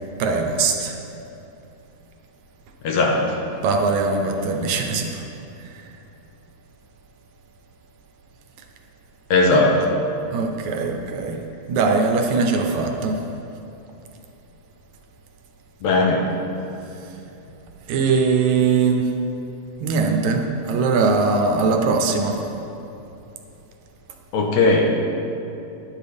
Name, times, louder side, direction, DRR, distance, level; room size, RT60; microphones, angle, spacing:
voice 1, 0.2-1.0 3.6-5.2 5.6-5.8 9.5-9.6 10.3-11.4 11.7-13.2 16.9-17.0 17.9-19.1 19.8-22.4, right 4 dB, 75° right, 3 dB, 2.0 m, -21 dB
voice 2, 2.8-3.4 9.3-9.8 15.8-16.3 24.3-24.9, left 3 dB, 70° left, 0 dB, 2.0 m, -18 dB
11.0 x 11.0 x 3.4 m, 2.8 s
omnidirectional pair, 3.5 m